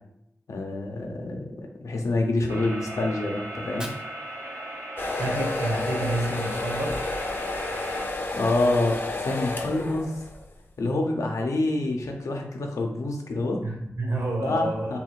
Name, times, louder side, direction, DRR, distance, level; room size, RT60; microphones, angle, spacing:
voice 1, 0.5-3.9 8.3-10.1 10.8-13.6 14.4-15.0, left 2 dB, 85° left, 2 dB, 0.6 m, -27 dB
sound 1, 2.5-8.1, right 1 dB, 80° right, 0.8 m, -38 dB
Fire, 3.5-5.5, equal, 15° right, 0.5 m, -46 dB
sound 2, 5.0-10.5, left 2 dB, 45° left, 0.6 m, -31 dB
voice 2, 5.2-7.0 13.6-15.0, right 2 dB, 60° right, -1 dB, 1.1 m, -29 dB
3.5 x 2.4 x 4.5 m, 0.81 s
wide cardioid pair, 85°, 5 cm